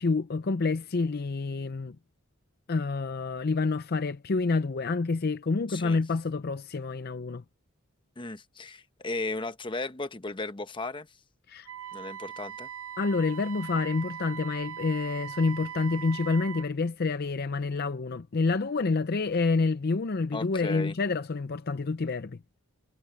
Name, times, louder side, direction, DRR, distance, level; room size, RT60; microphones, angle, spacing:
voice 1, 0.0-2.0 2.7-7.4 11.5-11.7 13.0-22.4, left 3 dB, 50° left, 0.5 m, -28 dB
voice 2, 8.2-11.1 11.9-12.7 20.3-21.0, left 2 dB, 25° left, 0.9 m, -35 dB
Wind instrument woodwind instrument, 11.7-16.7, right 9 dB, 70° right, 0.9 m, -40 dB
head